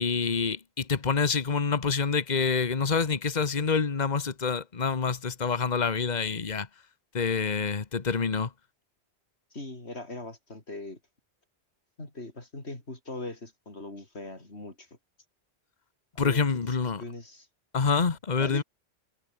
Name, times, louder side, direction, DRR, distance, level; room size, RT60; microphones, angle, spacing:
voice 1, 0.0-6.7 7.1-8.5 16.2-17.0 17.7-18.6, left 5 dB, 40° left, 1.4 m, -27 dB
voice 2, 9.5-11.0 12.0-14.9 16.2-17.5 18.0-18.6, left 2 dB, 75° left, 5.3 m, -41 dB
omnidirectional pair, 1.1 m